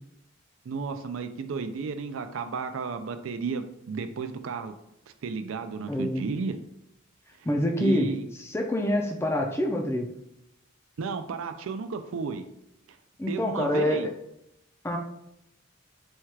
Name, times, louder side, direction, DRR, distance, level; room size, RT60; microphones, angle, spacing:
voice 1, 0.7-4.7 5.2-6.6 7.8-8.3 11.0-12.5 13.3-14.1, right 5 dB, 70° right, 9 dB, 0.4 m, -33 dB
voice 2, 5.9-6.2 7.4-8.1 8.4-10.1 13.2-14.1 14.8-15.0, left 1 dB, 10° left, 2 dB, 0.4 m, -26 dB
4.4 x 2.4 x 4.5 m, 0.81 s
head